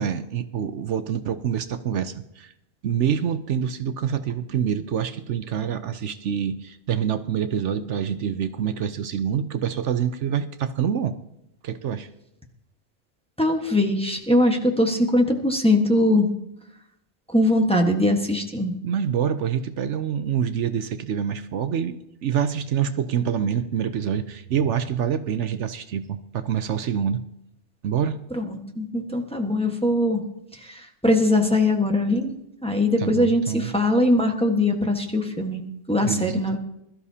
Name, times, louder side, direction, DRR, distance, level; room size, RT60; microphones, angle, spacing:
voice 1, 0.0-2.5 2.8-11.2 11.6-12.1 18.8-27.2 27.8-28.2 33.0-33.7 36.0-36.6, right 8 dB, 75° right, 10 dB, 1.0 m, -26 dB
voice 2, 13.4-16.3 17.3-18.7 28.4-30.2 30.7-32.3 32.6-35.6 35.9-36.6, left 1 dB, 5° left, 2 dB, 1.3 m, -21 dB
21.5 x 13.0 x 2.8 m, 0.82 s
omnidirectional pair, 1.2 m